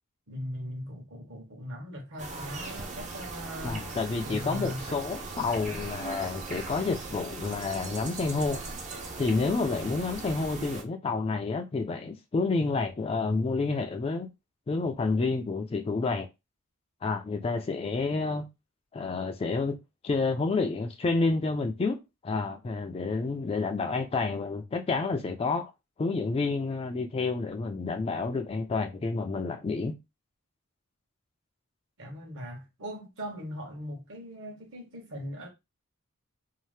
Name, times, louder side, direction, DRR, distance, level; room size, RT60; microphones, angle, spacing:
voice 1, 0.3-3.9 4.2-5.0 5.3-5.8 32.0-35.5, equal, 60° right, 1.0 m, -40 dB
sound 1, 2.2-10.8, right 3 dB, 35° right, 0.5 m, -39 dB
voice 2, 3.6-8.6 9.2-14.3 14.7-16.3 17.0-18.5 18.9-19.8 20.0-25.7 26.0-29.9, left 3 dB, 25° left, 0.3 m, -29 dB
2.7 x 2.0 x 3.2 m
head